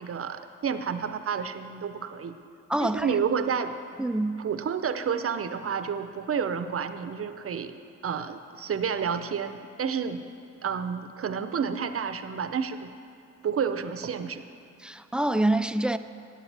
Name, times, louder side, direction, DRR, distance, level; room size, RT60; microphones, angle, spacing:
voice 1, 0.0-2.4 2.8-3.8 4.4-7.7 8.0-10.2 10.6-12.9 13.4-14.4, right 6 dB, 50° right, 10 dB, 0.7 m, -30 dB
voice 2, 2.7-3.1 4.0-4.4 14.8-16.0, right 1 dB, 5° right, 11 dB, 0.3 m, -26 dB
14.5 x 9.7 x 3.4 m, 2.5 s
cardioid pair, 55°, 30 cm